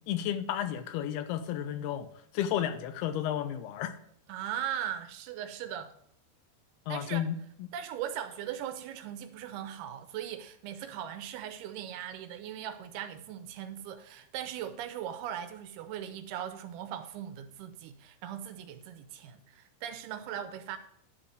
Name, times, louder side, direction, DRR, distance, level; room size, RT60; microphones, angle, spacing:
voice 1, 0.0-2.1 2.3-3.9 6.9-7.4, left 10 dB, 85° left, 2.6 m, -32 dB
voice 2, 4.3-5.9 6.9-7.3 7.7-20.8, right 10 dB, 85° right, 2.7 m, -39 dB
10.5 x 4.3 x 6.3 m
omnidirectional pair, 4.6 m